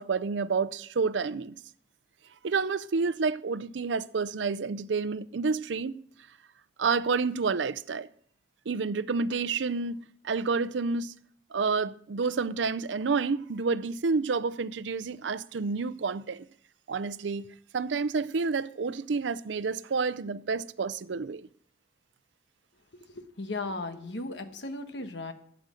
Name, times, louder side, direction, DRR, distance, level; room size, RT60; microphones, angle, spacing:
voice 1, 0.0-1.5 2.4-5.9 6.8-8.1 8.7-11.1 11.5-16.5 16.9-17.5 17.7-21.5, right 4 dB, 85° right, 0.5 m, -29 dB
voice 2, 22.9-25.3, left 2 dB, 70° left, 1.3 m, -36 dB
12.0 x 7.9 x 6.3 m
head